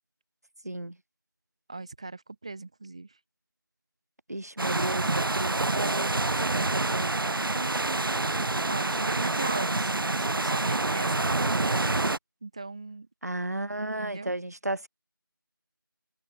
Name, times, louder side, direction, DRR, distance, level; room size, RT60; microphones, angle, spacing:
voice 1, 0.6-1.0 4.3-6.4 6.7-7.1 13.2-14.9, right 1 dB, 45° right, 1.0 m, -33 dB
voice 2, 1.7-3.2 7.5-8.2 8.7-11.8 12.4-13.1 14.0-14.4, right 3 dB, 15° right, 2.8 m, -39 dB
sound 1, 4.6-12.2, right 2 dB, 75° right, 0.5 m, -27 dB
open air
figure-of-eight pair, 175°, 12 cm